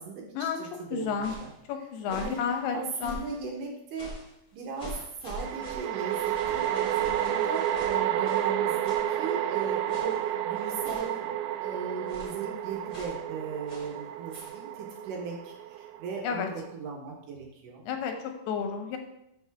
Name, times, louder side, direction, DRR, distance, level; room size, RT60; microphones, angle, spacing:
voice 1, 0.0-1.5 1.8-2.4 2.7-4.1 4.5-17.8, right 5 dB, 65° right, 0 dB, 2.4 m, -38 dB
voice 2, 0.9-1.3 1.7-3.2 16.2-16.5 17.8-19.0, left 7 dB, 90° left, 5 dB, 3.0 m, -31 dB
sound 1, 0.9-1.5 2.0-2.4 3.0-3.4 3.9-4.3 4.8-8.5 8.8-9.1 9.9-10.3 10.8-11.2 12.1-12.4 12.9-13.2 13.7-14.0 14.3-14.6, right 1 dB, 25° left, 3.3 m, -44 dB
sound 2, 2.4-2.5 5.3-16.7, right 11 dB, 85° right, 2.6 m, -31 dB
13.0 x 5.5 x 3.5 m, 0.80 s
omnidirectional pair, 4.5 m